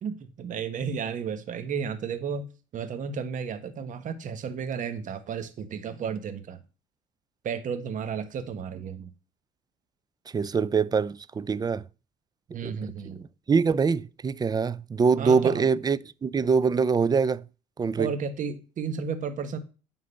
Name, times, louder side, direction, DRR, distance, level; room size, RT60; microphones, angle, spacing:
voice 1, 0.0-6.6 7.4-9.1 12.5-13.2 15.2-15.7 18.0-19.6, right 6 dB, 50° right, 1.4 m, -33 dB
voice 2, 10.3-11.8 12.6-12.7 13.5-17.4 17.8-18.1, right 5 dB, 25° right, 0.5 m, -24 dB
9.8 x 4.0 x 6.9 m
supercardioid pair, 80°, 17 cm